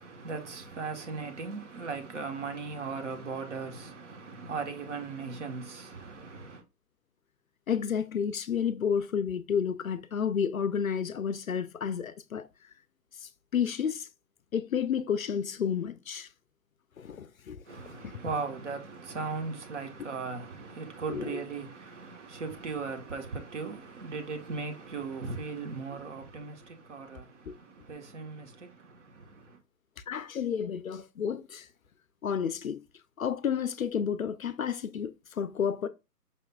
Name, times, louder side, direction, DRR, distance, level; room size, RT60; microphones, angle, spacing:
voice 1, 0.0-6.6 17.6-29.6, right 4 dB, 50° right, 1.1 m, -38 dB
voice 2, 7.7-12.5 13.2-14.1 14.5-16.3 17.0-18.2 21.1-21.2 27.5-27.6 30.1-31.7 32.2-32.8 33.2-35.9, left 7 dB, 60° left, 0.5 m, -31 dB
5.6 x 3.4 x 2.3 m
figure-of-eight pair, 145°, 48 cm